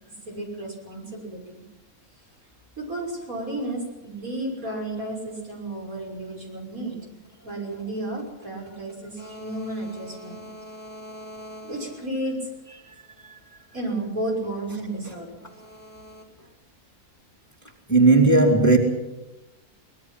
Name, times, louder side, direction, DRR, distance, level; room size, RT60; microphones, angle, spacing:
voice 1, 0.3-1.6 2.8-7.0 7.4-12.4 13.7-16.2, right 1 dB, 65° right, 6.5 m, -33 dB
voice 2, 17.9-18.8, right 3 dB, 10° left, 2.7 m, -15 dB
24.0 x 20.0 x 5.8 m
omnidirectional pair, 1.6 m